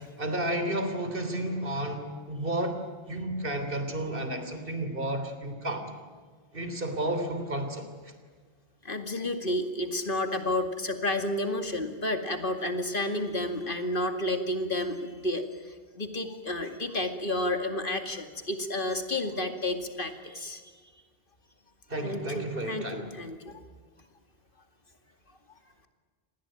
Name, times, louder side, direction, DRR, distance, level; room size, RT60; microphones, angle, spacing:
voice 1, 0.0-2.8 3.1-5.9 6.5-8.1 21.9-23.1, right 1 dB, 60° right, 7 dB, 3.6 m, -32 dB
voice 2, 8.8-15.5 16.0-20.6 22.0-23.6, left 1 dB, 60° left, 6 dB, 2.5 m, -31 dB
28.0 x 20.5 x 9.0 m, 1.5 s
omnidirectional pair, 1.0 m